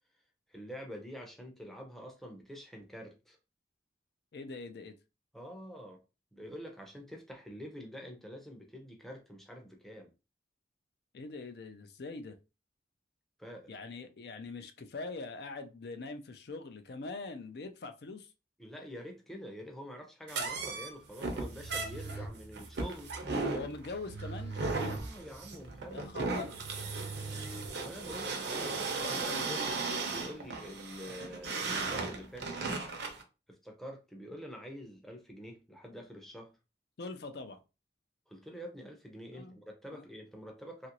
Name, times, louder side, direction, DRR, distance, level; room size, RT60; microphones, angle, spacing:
voice 1, 0.5-3.4 5.3-6.0 6.3-10.1 13.4-13.7 18.6-23.1 24.8-26.4 27.7-32.5 33.5-36.6 38.3-40.9, equal, ahead, 0.6 m, -46 dB
voice 2, 4.3-5.0 11.1-12.4 13.7-18.3 23.5-24.6 25.9-26.6 28.7-29.5 37.0-37.6 39.3-39.6 39.9-40.0, left 3 dB, 60° left, 0.4 m, -43 dB
sound 1, 20.3-33.2, right 3 dB, 65° right, 0.6 m, -36 dB
sound 2, 21.3-28.3, right 3 dB, 30° left, 0.9 m, -44 dB
2.9 x 2.5 x 2.9 m
head